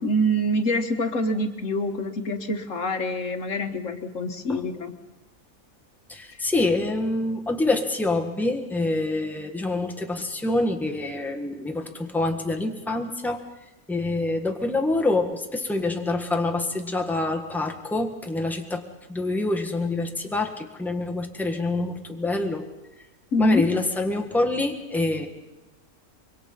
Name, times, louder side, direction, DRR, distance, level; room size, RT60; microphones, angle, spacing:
voice 1, 0.0-4.9 23.3-23.6, equal, 60° left, 7 dB, 1.6 m, -25 dB
voice 2, 6.1-13.4 13.9-22.7 23.4-25.3, left 2 dB, ahead, 2 dB, 1.6 m, -26 dB
25.0 x 23.0 x 5.6 m, 1.0 s
omnidirectional pair, 1.5 m